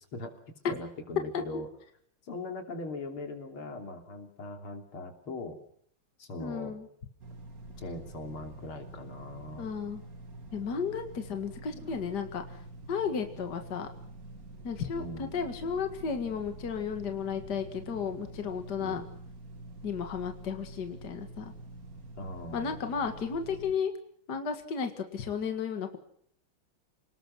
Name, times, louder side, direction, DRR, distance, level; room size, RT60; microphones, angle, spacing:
voice 1, 0.7-1.7 2.2-5.6 6.2-6.7 7.8-9.7 15.0-15.3 18.8-19.0 22.2-22.8, left 2 dB, 85° left, 5 dB, 4.0 m, -40 dB
voice 2, 6.4-6.9 9.6-10.0 10.5-12.6 12.9-13.9 14.6-19.0 19.8-21.5 22.5-23.9 24.3-26.0, left 6 dB, 50° left, 6 dB, 2.4 m, -33 dB
sound 1, 7.2-23.7, right 2 dB, 45° right, 2.9 m, -47 dB
28.5 x 19.5 x 6.2 m, 0.64 s
omnidirectional pair, 2.3 m